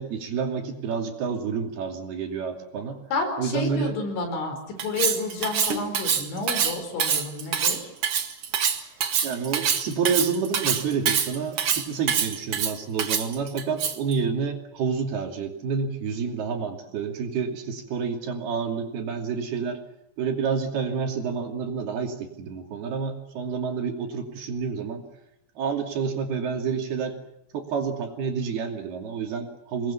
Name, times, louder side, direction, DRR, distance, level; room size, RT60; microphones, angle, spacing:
voice 1, 0.0-3.0 3.4-4.0 9.2-19.8 20.2-25.0 25.6-27.2 27.5-29.9, right 6 dB, 60° right, 3 dB, 4.5 m, -29 dB
voice 2, 3.1-4.6 4.8-7.9, left 3 dB, 90° left, 5 dB, 7.1 m, -30 dB
Cutlery silverware, 4.8-14.1, right 7 dB, 80° right, 1.2 m, -25 dB
27.5 x 21.0 x 7.3 m, 0.78 s
omnidirectional pair, 5.3 m